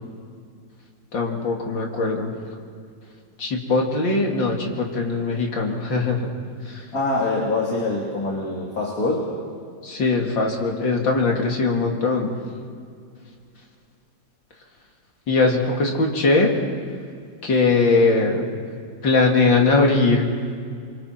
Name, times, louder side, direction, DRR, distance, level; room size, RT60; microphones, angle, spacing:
voice 1, 1.1-2.3 3.4-6.3 6.6-6.9 9.8-12.3 15.3-16.6 17.4-18.5 19.0-20.2, left 3 dB, 90° left, 0 dB, 3.3 m, -20 dB
voice 2, 6.9-9.4, left 2 dB, 50° left, -3 dB, 2.9 m, -24 dB
29.0 x 24.5 x 4.6 m, 2.3 s
omnidirectional pair, 2.0 m